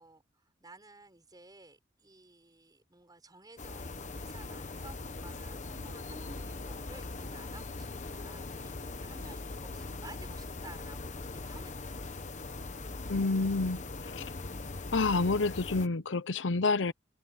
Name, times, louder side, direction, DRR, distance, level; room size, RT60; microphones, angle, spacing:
voice 1, 0.0-12.0, right 2 dB, 20° right, 5.6 m, -54 dB
sound 1, 3.6-15.9, left 3 dB, 40° left, 1.2 m, -41 dB
voice 2, 13.1-14.3 14.9-16.9, left 3 dB, 80° left, 0.8 m, -29 dB
head